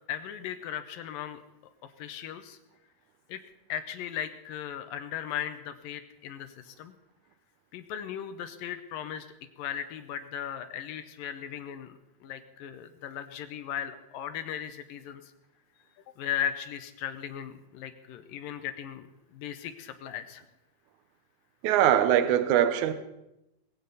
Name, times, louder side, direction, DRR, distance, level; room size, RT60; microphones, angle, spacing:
voice 1, 0.0-1.4 2.0-2.6 3.3-3.4 3.7-6.9 7.7-9.3 9.6-15.2 16.2-20.4, left 9 dB, 75° left, 2.2 m, -37 dB
voice 2, 21.6-22.9, right 10 dB, 70° right, 1.9 m, -22 dB
20.0 x 16.0 x 4.1 m
omnidirectional pair, 4.7 m